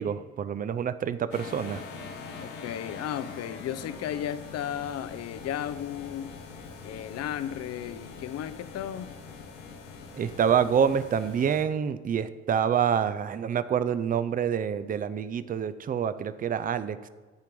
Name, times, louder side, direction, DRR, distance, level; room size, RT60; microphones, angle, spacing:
voice 1, 0.0-1.8 10.1-17.1, right 8 dB, 25° right, 13 dB, 0.4 m, -27 dB
sound 1, 1.3-11.6, left 4 dB, 75° left, 1.0 m, -43 dB
voice 2, 2.4-6.3 6.8-9.2, left 10 dB, 45° left, 13 dB, 0.6 m, -34 dB
10.5 x 4.5 x 5.2 m, 1.4 s
hypercardioid pair, 55°, 36 cm